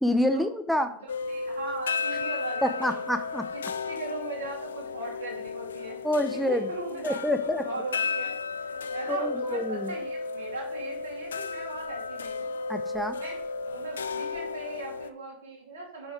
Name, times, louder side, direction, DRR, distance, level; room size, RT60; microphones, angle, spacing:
voice 1, 0.0-0.9 2.6-3.5 6.0-6.7 7.0-7.6 9.1-9.9 12.7-13.2, left 1 dB, ahead, 8 dB, 0.6 m, -27 dB
voice 2, 0.9-3.0 3.5-3.6 3.9-6.0 6.3-8.3 8.6-12.5 13.2-13.4 13.6-16.1, right 3 dB, 70° right, -1 dB, 2.6 m, -39 dB
sound 1, 1.1-15.1, left 4 dB, 75° left, 0.4 m, -34 dB
6.8 x 5.3 x 4.7 m, 0.66 s
figure-of-eight pair, 85°, 0 cm